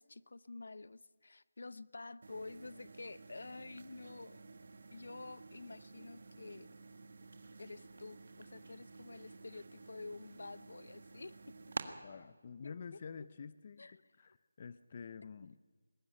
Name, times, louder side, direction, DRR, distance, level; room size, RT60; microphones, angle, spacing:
voice 1, 0.0-4.4 4.9-6.7 7.6-11.4 12.6-12.7 13.8-14.0 15.4-15.5, left 3 dB, 65° left, 18 dB, 0.7 m, -49 dB
sound 1, 2.2-11.9, right 4 dB, 50° right, 1.6 m, -51 dB
voice 2, 12.0-15.5, left 6 dB, 30° left, 15 dB, 0.5 m, -49 dB
20.5 x 12.5 x 9.9 m, 1.4 s
figure-of-eight pair, 170°, 0 cm